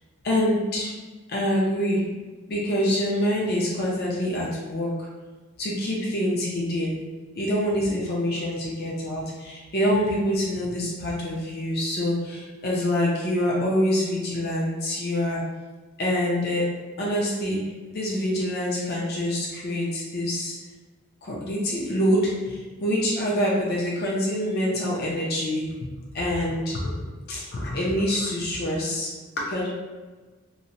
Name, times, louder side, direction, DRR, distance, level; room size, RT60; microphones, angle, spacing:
voice 1, 0.2-0.9 1.3-2.2 2.5-5.1 5.6-7.0 7.3-15.4 16.0-16.7 17.0-17.6 17.9-20.5 21.2-29.1 29.4-29.7, equal, 45° left, -4 dB, 0.5 m, -26 dB
2.8 x 2.1 x 2.7 m, 1.3 s
head